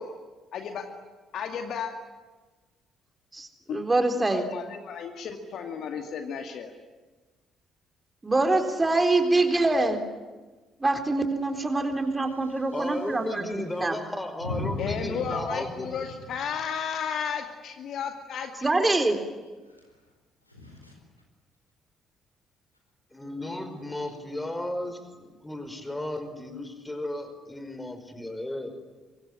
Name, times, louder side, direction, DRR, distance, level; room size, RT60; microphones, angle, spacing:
voice 1, 0.5-0.8 1.3-1.9 3.7-3.8 4.3-6.7 14.8-18.5, left 7 dB, 55° left, 2.3 m, -33 dB
voice 2, 3.3-4.5 8.2-10.0 10.8-14.0 18.6-19.2, right 2 dB, 20° right, 4.1 m, -25 dB
voice 3, 12.1-13.0 13.7-13.8 14.4-15.8 16.2-16.3 19.6-20.1 20.4-21.0 23.9-24.3, left 3 dB, 90° left, 4.5 m, -38 dB
voice 4, 12.7-16.1 23.1-28.7, left 1 dB, 10° left, 5.2 m, -35 dB
24.5 x 24.5 x 9.9 m
figure-of-eight pair, 45°, 0 cm